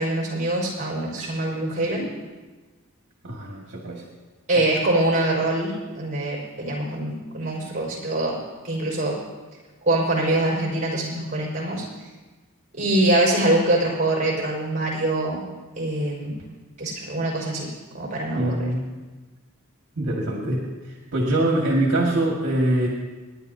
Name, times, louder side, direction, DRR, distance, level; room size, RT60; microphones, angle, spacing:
voice 1, 0.0-2.1 4.5-8.4 8.6-9.2 9.8-11.8 12.8-15.4 15.8-16.3 16.8-17.7 17.9-18.6, right 1 dB, 35° right, -2 dB, 4.8 m, -24 dB
voice 2, 3.2-4.0 4.6-4.7 18.3-18.9 20.0-22.9, right 1 dB, 60° right, -2 dB, 2.0 m, -24 dB
28.0 x 10.5 x 2.8 m, 1.3 s
head